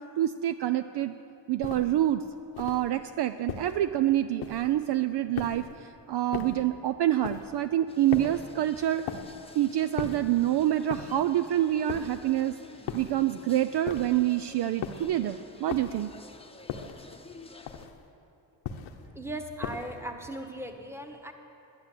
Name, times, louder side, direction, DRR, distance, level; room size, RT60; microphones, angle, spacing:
voice 1, 0.2-1.2 1.5-2.2 2.6-9.0 9.5-12.6 12.9-16.1, right 12 dB, 55° right, 11 dB, 0.5 m, -27 dB
sound 1, 1.6-2.0 2.5-2.9 3.5-3.9 4.4-4.8 5.3-5.8 6.3-6.7 7.2-7.6 8.1-8.5 9.1-9.4 10.0-10.4 10.9-11.3 11.9-12.3 12.9-13.3 13.9-14.3 14.8-15.2 15.7-16.1 16.7-17.1 17.7-18.1 18.6-19.1 19.6-20.0, left 7 dB, 75° left, 1.1 m, -38 dB
sound 2, 7.9-17.9, left 3 dB, 10° left, 0.9 m, -51 dB
voice 2, 19.1-21.3, right 1 dB, 5° right, 5 dB, 1.3 m, -38 dB
11.5 x 10.0 x 7.7 m, 2.7 s
cardioid pair, 80°, 48 cm